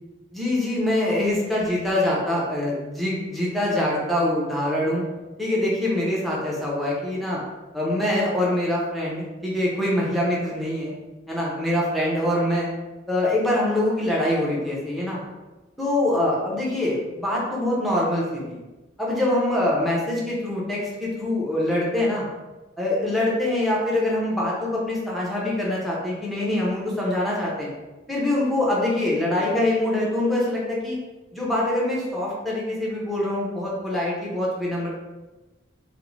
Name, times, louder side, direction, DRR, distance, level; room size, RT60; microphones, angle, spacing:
voice 1, 0.3-5.0 5.4-7.4 7.7-11.0 11.3-12.7 13.1-15.2 15.8-18.6 19.0-22.2 22.8-27.7 28.1-31.0 31.3-34.9, left 1 dB, ahead, -5 dB, 0.6 m, -24 dB
2.5 x 2.0 x 3.0 m, 1.1 s
head